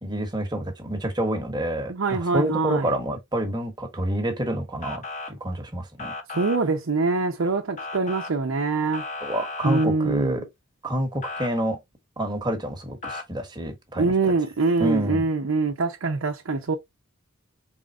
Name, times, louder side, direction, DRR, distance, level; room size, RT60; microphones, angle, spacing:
voice 1, 0.0-6.1 9.2-10.5 10.8-11.8 12.2-14.3 14.8-15.2, right 1 dB, 20° right, 1.2 m, -28 dB
voice 2, 1.9-2.9 6.3-9.0 9.6-10.4 14.0-16.8, right 3 dB, 70° right, 0.7 m, -24 dB
Motor vehicle (road) / Siren, 4.8-5.3 6.0-6.6 7.8-8.3 8.9-9.9 11.2-11.5 13.0-13.2, left 3 dB, 35° left, 0.7 m, -34 dB
4.4 x 3.7 x 2.4 m
head